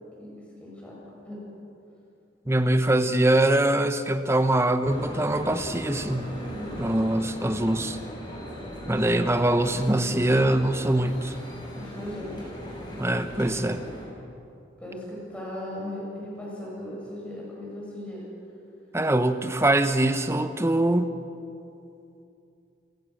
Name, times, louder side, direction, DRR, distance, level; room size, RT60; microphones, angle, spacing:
voice 1, 0.6-1.0 1.2-1.4 6.5-6.8 11.7-12.5 14.8-18.2, left 1 dB, 5° left, -5 dB, 7.9 m, -37 dB
voice 2, 2.5-6.3 6.8-8.0 8.9-11.4 12.9-13.8 18.9-21.2, right 1 dB, 15° right, 9 dB, 0.9 m, -23 dB
sound 1, 4.8-14.0, equal, 25° left, 6.2 m, -38 dB
29.0 x 17.5 x 6.5 m, 2.7 s
head